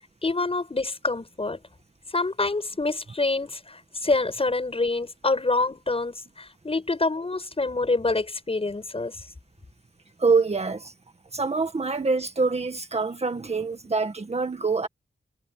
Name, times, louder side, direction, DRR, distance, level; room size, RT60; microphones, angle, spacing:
voice 1, 0.2-1.6 2.1-9.2, left 3 dB, 30° left, 6.9 m, -26 dB
voice 2, 10.2-10.9 11.3-14.9, right 4 dB, 35° right, 1.8 m, -25 dB
wide cardioid pair, 115°, 19 cm